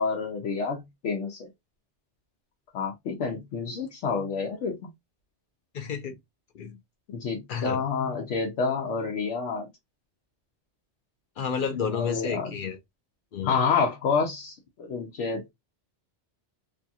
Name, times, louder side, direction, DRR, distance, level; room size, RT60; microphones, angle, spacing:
voice 1, 0.0-1.5 2.7-4.7 7.1-9.7 11.9-12.6 13.4-15.5, left 5 dB, 85° left, 1.0 m, -28 dB
voice 2, 5.7-6.1 6.5-6.8 7.5-7.8 11.4-12.8 13.3-13.5, left 6 dB, 55° left, 0.6 m, -30 dB
2.7 x 2.3 x 2.6 m
omnidirectional pair, 1.2 m